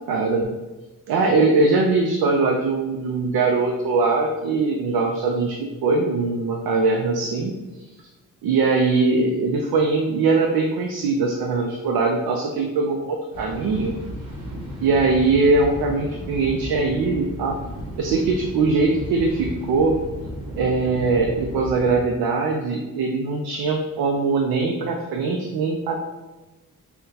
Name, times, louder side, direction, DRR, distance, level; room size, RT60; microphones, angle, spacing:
voice 1, 0.1-0.5 1.1-7.5 8.4-13.9 14.8-17.6 18.0-20.0 20.5-26.0, right 3 dB, 80° right, 2 dB, 0.5 m, -21 dB
sound 1, 13.3-22.0, equal, 55° right, 1.5 m, -34 dB
5.7 x 2.2 x 2.7 m, 1.1 s
cardioid pair, 70°, 36 cm